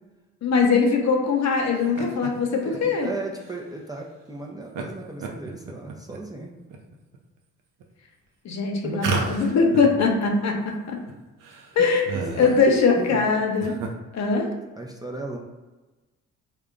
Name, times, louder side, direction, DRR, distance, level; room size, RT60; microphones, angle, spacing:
voice 1, 0.4-3.1 8.4-11.0 11.8-13.8 14.1-14.5, left 4 dB, 55° left, 2 dB, 0.8 m, -21 dB
sound 1, 1.7-2.3 2.7-2.8 3.4-3.5 4.7-4.8 5.2-6.2 6.7-7.2 7.8-7.9 9.0-9.9 10.2-10.3 10.5-10.6 11.1-11.2 11.4-12.7 13.4-13.9, right 4 dB, 75° right, 0.6 m, -31 dB
voice 2, 2.6-6.5 8.8-9.0 12.1-12.5 13.0-13.2 14.8-15.4, right 2 dB, 10° right, -1 dB, 0.5 m, -36 dB
3.6 x 2.2 x 3.7 m, 1.2 s
supercardioid pair, 70°, 32 cm